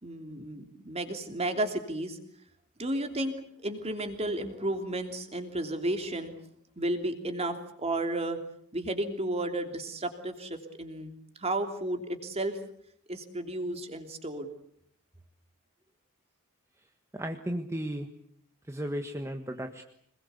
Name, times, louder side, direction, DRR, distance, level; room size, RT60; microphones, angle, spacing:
voice 1, 0.0-2.2 2.8-6.3 6.8-8.4 8.7-11.1 11.4-12.6 13.1-14.5, right 1 dB, 30° right, 6 dB, 3.2 m, -33 dB
voice 2, 17.1-18.1 18.7-19.8, equal, 15° right, 5 dB, 1.5 m, -34 dB
26.0 x 21.5 x 8.4 m, 0.66 s
head